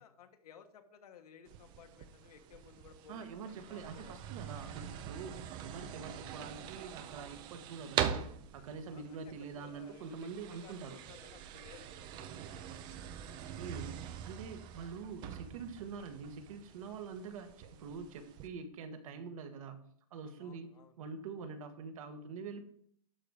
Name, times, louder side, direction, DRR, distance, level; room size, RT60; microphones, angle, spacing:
voice 1, 0.0-4.7 8.9-12.9 20.4-20.9 21.4-21.5, left 7 dB, 80° left, 6 dB, 1.5 m, -58 dB
sound 1, 1.5-18.5, right 9 dB, 25° right, 0.5 m, -43 dB
voice 2, 3.1-11.0 13.6-19.8 20.1-20.7 21.0-22.7, right 5 dB, 60° right, 7 dB, 1.4 m, -45 dB
12.0 x 4.1 x 4.9 m, 0.63 s
supercardioid pair, 160°, 19 cm